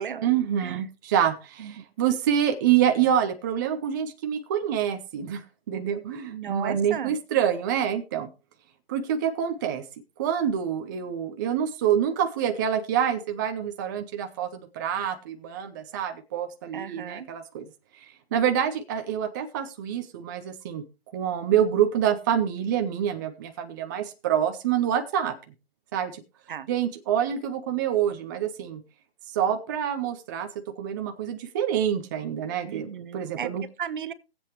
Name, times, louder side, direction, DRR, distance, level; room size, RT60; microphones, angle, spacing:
voice 1, 0.2-5.4 5.7-8.3 8.9-9.8 10.2-17.7 18.0-18.1 18.3-20.8 21.1-25.3 25.9-26.2 26.7-28.8 29.3-30.5 30.8-33.6, right 9 dB, 20° right, 0.6 m, -26 dB
voice 2, 6.3-7.2 16.7-17.3 26.5-26.7 32.6-33.5 33.8-34.1, right 8 dB, 55° right, 0.9 m, -35 dB
18.5 x 7.9 x 2.9 m
hypercardioid pair, 145°, 30 cm